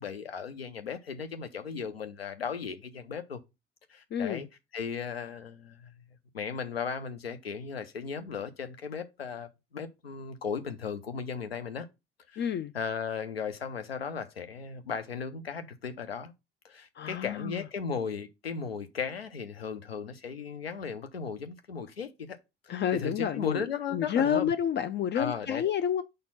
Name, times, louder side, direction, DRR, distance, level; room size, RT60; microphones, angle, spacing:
voice 1, 0.0-3.4 3.9-4.5 4.7-5.9 6.3-11.9 12.3-12.5 12.7-16.3 16.6-22.4 22.6-24.5 25.1-25.6, left 6 dB, 90° left, 0.7 m, -36 dB
voice 2, 4.1-4.5 12.4-12.7 17.0-17.6 22.7-26.0, left 9 dB, 35° left, 0.5 m, -29 dB
5.1 x 4.3 x 5.7 m
figure-of-eight pair, 55°, 29 cm